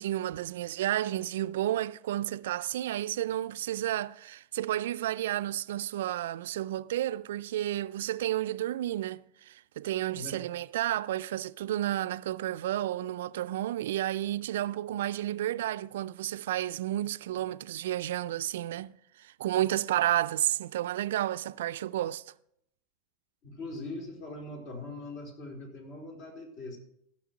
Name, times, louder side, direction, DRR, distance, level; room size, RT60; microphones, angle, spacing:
voice 1, 0.0-22.2, right 13 dB, 75° right, 0.4 m, -31 dB
voice 2, 23.4-26.8, left 2 dB, 55° left, 4.3 m, -41 dB
14.5 x 6.6 x 6.1 m
hypercardioid pair, 90°, 0 cm